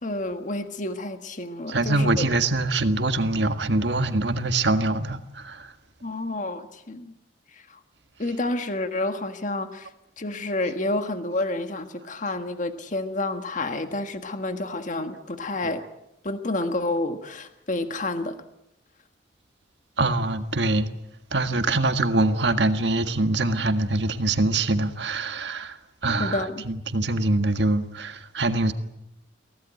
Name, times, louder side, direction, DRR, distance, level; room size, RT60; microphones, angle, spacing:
voice 1, 0.0-2.3 6.0-7.1 7.5-7.8 8.2-9.9 10.2-15.8 16.2-18.4 26.2-26.7, left 2 dB, 45° left, 1.6 m, -29 dB
voice 2, 1.7-5.7 20.0-20.9 21.3-25.8 26.0-28.7, right 2 dB, 70° right, 1.7 m, -24 dB
24.0 x 17.0 x 9.4 m
head